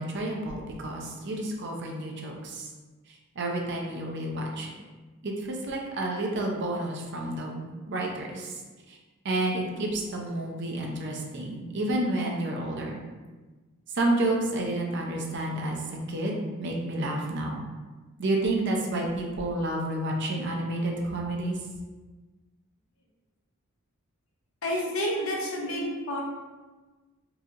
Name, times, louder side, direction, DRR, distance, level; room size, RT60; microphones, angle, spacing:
voice 1, 0.0-2.7 3.1-4.7 5.2-8.6 8.9-9.0 9.2-13.0 13.9-17.6 18.2-21.6, right 1 dB, 55° right, 0 dB, 0.6 m, -30 dB
voice 2, 24.6-26.2, equal, 70° left, -2 dB, 0.8 m, -29 dB
4.1 x 2.8 x 2.5 m, 1.3 s
head